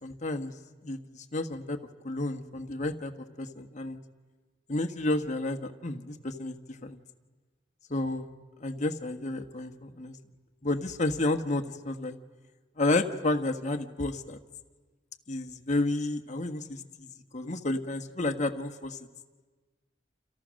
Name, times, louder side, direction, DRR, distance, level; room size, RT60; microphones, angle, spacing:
voice 1, 0.0-0.5 0.8-1.8 2.0-4.0 4.7-7.0 7.9-8.3 8.6-10.1 10.6-12.2 12.8-14.4 15.3-17.1 17.3-19.0, left 2 dB, 40° left, 7 dB, 1.4 m, -31 dB
29.0 x 28.0 x 6.4 m, 1.4 s
head